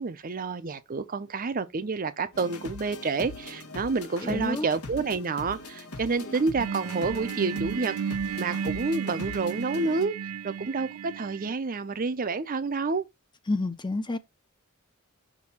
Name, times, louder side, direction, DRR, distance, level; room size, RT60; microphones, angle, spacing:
voice 1, 0.0-7.9 8.4-13.0, right 4 dB, 40° right, 0.6 m, -29 dB
sound 1, 2.3-10.0, left 2 dB, 85° left, 1.4 m, -42 dB
voice 2, 4.2-4.7 13.5-14.2, left 2 dB, 20° left, 0.6 m, -29 dB
sound 2, 6.6-11.5, right 7 dB, 85° right, 0.4 m, -34 dB
6.1 x 2.8 x 5.5 m
head